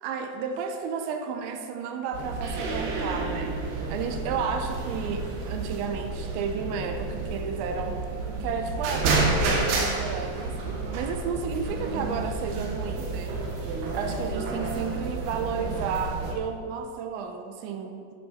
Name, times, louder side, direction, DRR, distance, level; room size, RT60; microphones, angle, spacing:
voice 1, 0.0-8.0 8.4-10.6 10.9-13.4 13.9-18.1, right 6 dB, 85° right, 5 dB, 3.1 m, -32 dB
sound 1, 2.1-16.3, right 3 dB, 65° right, 2.8 m, -30 dB
11.5 x 10.5 x 4.3 m, 2.3 s
omnidirectional pair, 5.3 m